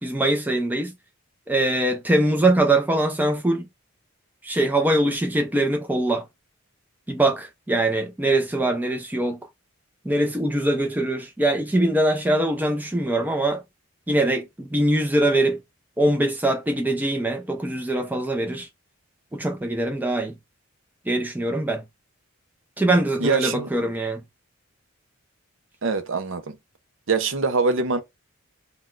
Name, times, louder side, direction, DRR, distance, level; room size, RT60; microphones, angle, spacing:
voice 1, 0.0-0.9 1.5-3.7 4.4-6.3 7.1-9.4 10.0-13.6 14.1-15.6 16.0-18.7 19.3-20.4 21.1-21.8 22.8-24.2, right 1 dB, 10° right, 0.4 m, -22 dB
voice 2, 23.2-23.7 25.8-26.6 27.1-28.0, right 4 dB, 60° right, 0.6 m, -23 dB
3.9 x 2.2 x 2.4 m
head